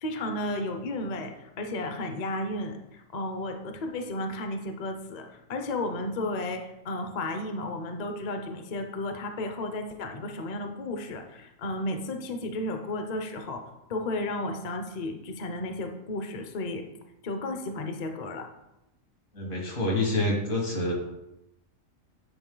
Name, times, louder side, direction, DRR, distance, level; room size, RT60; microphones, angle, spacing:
voice 1, 0.0-16.8 17.2-18.5, left 2 dB, 45° left, 5 dB, 0.6 m, -33 dB
voice 2, 19.3-20.9, left 1 dB, 70° left, 0 dB, 2.1 m, -27 dB
9.0 x 4.7 x 3.8 m, 0.91 s
omnidirectional pair, 1.4 m